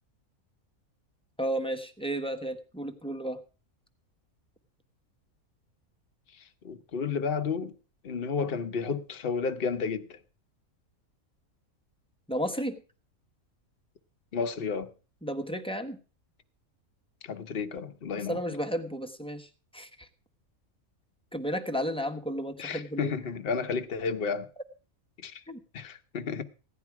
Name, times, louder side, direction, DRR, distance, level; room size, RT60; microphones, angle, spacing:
voice 1, 1.4-3.4 12.3-12.8 15.2-16.0 18.3-20.1 21.3-23.2 25.5-25.6, equal, 5° left, 1.0 m, -33 dB
voice 2, 6.6-7.7 8.0-10.2 14.3-14.9 17.2-18.4 22.6-24.5 25.2-25.4 25.7-26.4, left 5 dB, 45° left, 1.1 m, -32 dB
16.0 x 10.5 x 4.7 m
omnidirectional pair, 1.5 m